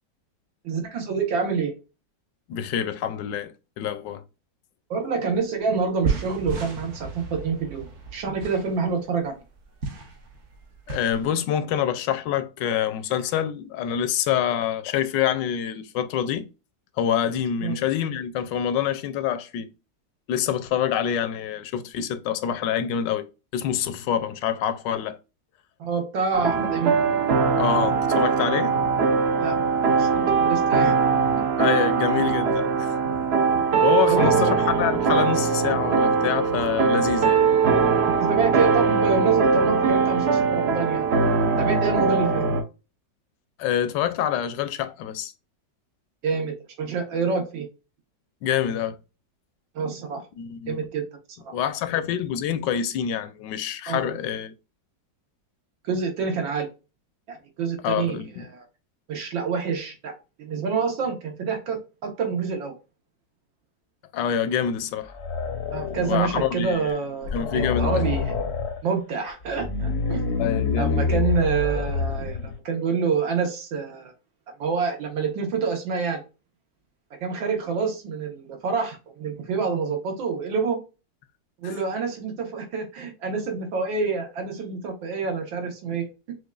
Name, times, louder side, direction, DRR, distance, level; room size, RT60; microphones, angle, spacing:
voice 1, 0.6-1.7 4.9-9.4 17.6-17.8 25.8-27.0 29.4-29.6 30.0-30.9 31.4-31.5 34.1-34.5 38.3-41.1 41.6-42.4 46.2-47.7 49.8-50.2 50.7-51.0 53.9-54.1 55.8-56.7 57.3-58.6 59.1-60.1 60.4-62.7 65.7-68.3 68.8-70.2 70.8-74.1 74.6-76.2 77.2-80.8 81.6-86.4, right 5 dB, 85° right, 1.9 m, -27 dB
voice 2, 2.5-4.2 10.9-16.5 17.0-19.7 20.3-23.3 23.5-25.2 27.6-28.8 31.6-33.0 33.8-37.4 43.6-45.3 48.4-49.0 50.4-50.8 51.5-54.5 57.8-58.4 64.1-65.1 66.0-66.9 67.3-68.0 70.4-71.2 81.6-81.7, left 9 dB, 75° left, 1.2 m, -26 dB
sound 1, 5.3-5.4 5.7-11.3, right 4 dB, 50° right, 0.9 m, -33 dB
sound 2, 26.3-42.6, right 5 dB, 70° right, 0.6 m, -21 dB
sound 3, 65.0-66.5 66.9-67.0 67.2-68.8 69.4-72.5, left 4 dB, 60° left, 0.7 m, -27 dB
6.1 x 2.5 x 2.3 m
omnidirectional pair, 2.0 m